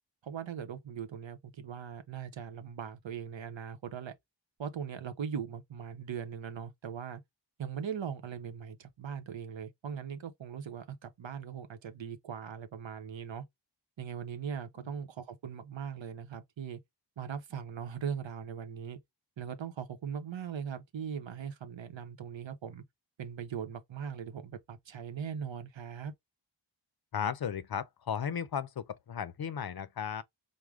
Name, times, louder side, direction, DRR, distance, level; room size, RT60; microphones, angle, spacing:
voice 1, 0.2-4.1 4.6-7.2 7.6-13.4 14.0-16.8 17.2-19.0 19.4-22.8 23.2-26.1, right 7 dB, 80° right, 0.8 m, -40 dB
voice 2, 27.1-30.2, left 8 dB, 55° left, 0.5 m, -35 dB
4.8 x 2.1 x 3.5 m
wide cardioid pair, 55°, 45 cm